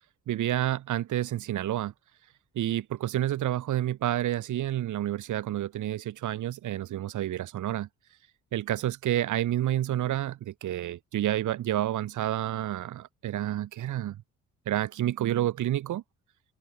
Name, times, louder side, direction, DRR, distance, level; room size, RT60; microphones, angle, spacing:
voice 1, 0.3-1.9 2.6-7.9 8.5-14.2 14.7-16.0, right 13 dB, 75° right, 3.9 m, -29 dB
open air
cardioid pair, 90°, 30 cm